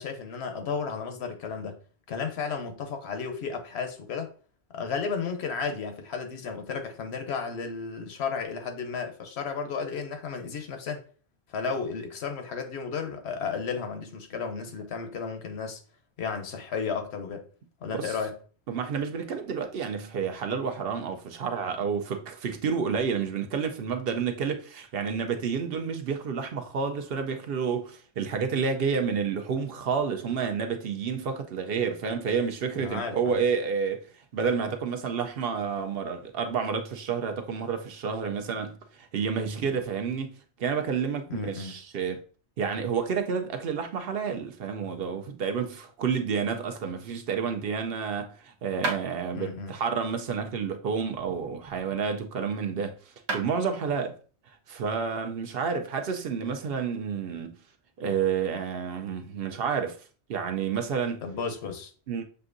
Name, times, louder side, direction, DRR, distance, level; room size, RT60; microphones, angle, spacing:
voice 1, 0.0-1.8 2.1-4.3 4.7-11.0 11.5-15.8 16.2-17.5 17.8-18.4 32.7-33.4 41.3-41.8 49.3-49.7 61.2-61.9, left 5 dB, 75° left, 1.0 m, -33 dB
voice 2, 17.8-18.2 18.7-40.3 40.6-42.2 42.6-54.2 54.7-57.6 58.0-60.0 60.3-61.2 62.1-62.2, right 6 dB, 65° right, 0.8 m, -30 dB
sound 1, 48.8-49.1 51.0-52.3 52.9-53.0 53.3-53.5, right 3 dB, 80° right, 1.3 m, -34 dB
6.6 x 2.6 x 2.5 m
omnidirectional pair, 1.1 m